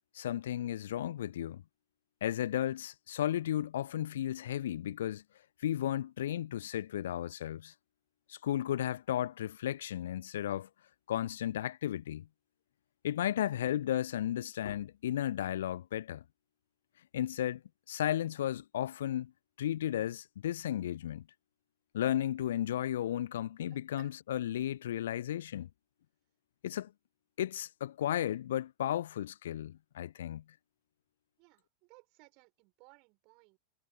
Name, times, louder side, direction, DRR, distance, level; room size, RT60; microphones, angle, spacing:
voice 1, 0.1-1.6 2.2-5.2 5.6-7.7 8.3-10.7 11.1-12.3 13.0-16.2 17.1-17.6 17.9-19.3 19.6-21.3 21.9-25.7 26.6-26.9 27.4-30.4, left 11 dB, 60° left, 0.6 m, -34 dB
voice 2, 23.7-24.1 31.4-33.6, right 30 dB, 45° right, 6.5 m, -61 dB
figure-of-eight pair, 90°, 0 cm